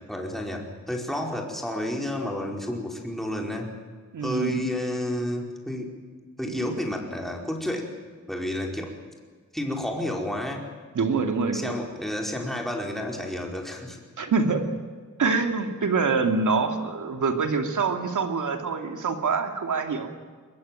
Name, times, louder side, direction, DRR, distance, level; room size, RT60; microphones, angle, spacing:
voice 1, 0.1-3.7 4.2-5.9 6.4-7.9 8.3-8.9 9.5-10.7 11.5-14.0, left 1 dB, ahead, 0 dB, 4.8 m, -30 dB
voice 2, 4.1-4.6 10.9-11.8 14.2-14.6 15.2-20.1, right 4 dB, 85° right, 5 dB, 2.8 m, -25 dB
23.0 x 22.0 x 9.2 m, 1.5 s
wide cardioid pair, 120°, 30 cm